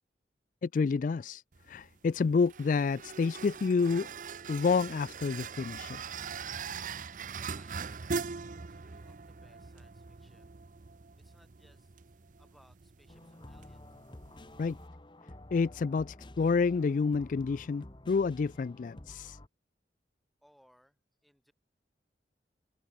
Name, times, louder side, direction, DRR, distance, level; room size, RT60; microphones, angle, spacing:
voice 1, 0.6-1.4 1.7-4.1 4.5-6.0 14.6-14.8 15.5-19.4, left 4 dB, 45° left, 0.3 m, -29 dB
sound 1, 1.5-14.9, right 5 dB, 45° right, 0.7 m, -42 dB
voice 2, 7.3-10.6 11.2-13.9 20.4-21.5, equal, ahead, 4.7 m, -66 dB
sound 2, 13.1-19.5, left 1 dB, 25° left, 1.4 m, -50 dB
head